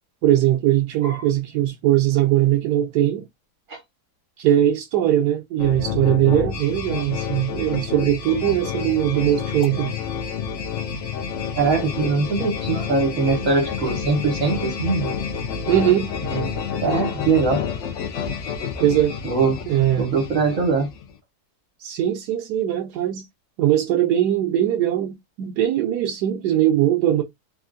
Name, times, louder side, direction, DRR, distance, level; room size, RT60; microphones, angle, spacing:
voice 1, 0.2-3.2 4.4-10.0 15.7-16.1 18.8-19.2 19.7-20.2 21.8-23.2 23.6-27.2, right 12 dB, 85° right, 1.1 m, -20 dB
sound 1, 5.6-21.1, left 6 dB, 65° left, 0.8 m, -29 dB
voice 2, 11.5-15.1 16.3-16.5 16.8-17.7 19.2-19.6 20.0-20.9, right 4 dB, 60° right, 1.4 m, -22 dB
3.4 x 2.4 x 2.5 m
omnidirectional pair, 1.7 m